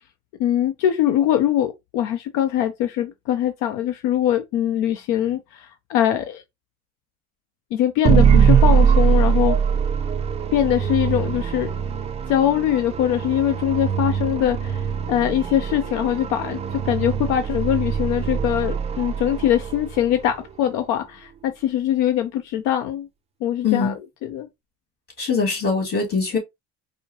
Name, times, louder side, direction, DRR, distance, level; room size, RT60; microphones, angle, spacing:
voice 1, 0.4-6.4 7.7-9.6 10.5-11.7 12.3-23.1 23.4-23.9 24.2-24.5, left 11 dB, 80° left, 0.6 m, -22 dB
sound 1, 8.0-20.2, right 7 dB, 20° right, 0.3 m, -22 dB
voice 2, 23.6-23.9 25.2-26.4, left 5 dB, 30° left, 2.4 m, -22 dB
4.6 x 2.1 x 2.6 m
cardioid pair, 130°, 31 cm